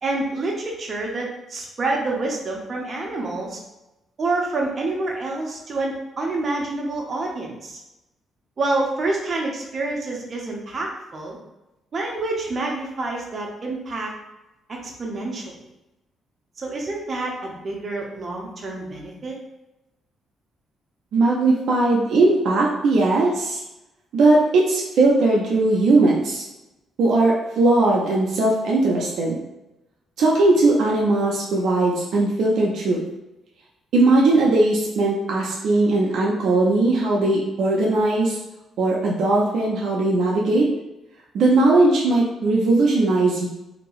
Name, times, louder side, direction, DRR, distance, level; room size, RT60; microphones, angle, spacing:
voice 1, 0.0-3.6 4.2-7.8 8.6-11.4 11.9-14.1 14.7-15.5 16.6-19.4, right 2 dB, 40° right, -1 dB, 0.8 m, -27 dB
voice 2, 21.1-23.6 24.1-26.4 27.0-29.4 30.2-33.0 33.9-38.4 38.8-40.7 41.3-43.5, right 2 dB, 75° right, -3 dB, 0.6 m, -19 dB
2.9 x 2.7 x 3.0 m, 0.95 s
cardioid pair, 90°, 0 cm